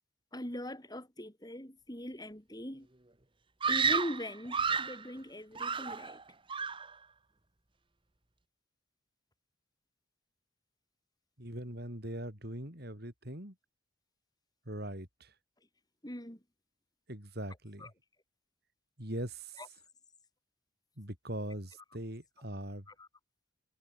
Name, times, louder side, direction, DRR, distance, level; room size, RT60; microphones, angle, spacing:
voice 1, 0.3-2.9 3.7-6.2 16.0-16.4 17.8-17.9 19.6-19.7 22.9-23.1, left 1 dB, 20° left, 6.3 m, -41 dB
Screaming, 3.6-5.0 5.6-6.2 6.5-6.9, right 5 dB, 25° right, 1.7 m, -31 dB
voice 2, 11.4-13.6 14.7-15.3 17.1-17.9 19.0-19.6 21.0-22.9, right 1 dB, 55° right, 7.8 m, -41 dB
head